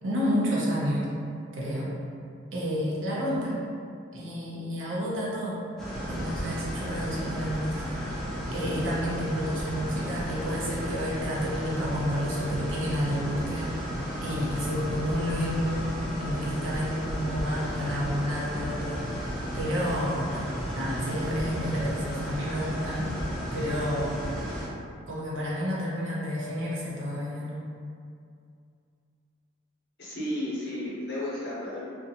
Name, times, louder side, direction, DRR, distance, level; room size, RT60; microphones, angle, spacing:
voice 1, 0.0-1.1 1.5-2.0 2.5-3.6 4.1-5.6 6.1-8.0 8.5-13.9 14.2-19.3 19.5-23.1 23.5-24.1 25.1-27.6, equal, 75° right, -6 dB, 0.6 m, -30 dB
sound 1, 5.8-24.7, equal, ahead, 0.3 m, -34 dB
voice 2, 30.0-31.9, left 1 dB, 55° left, -7 dB, 0.7 m, -33 dB
2.5 x 2.2 x 2.7 m, 2.4 s
head